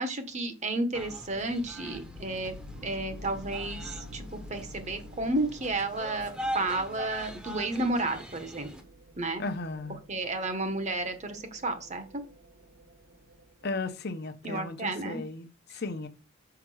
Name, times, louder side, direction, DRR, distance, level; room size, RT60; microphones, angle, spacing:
voice 1, 0.0-2.5 2.8-8.7 9.2-9.4 10.1-12.2 14.4-15.2, right 2 dB, 35° right, 1.1 m, -32 dB
sound 1, 0.9-8.8, equal, 5° right, 0.9 m, -42 dB
sound 2, 1.9-13.9, left 1 dB, 85° right, 1.4 m, -49 dB
voice 2, 9.4-10.0 13.6-16.1, left 3 dB, 50° left, 0.9 m, -35 dB
5.9 x 5.0 x 4.8 m
head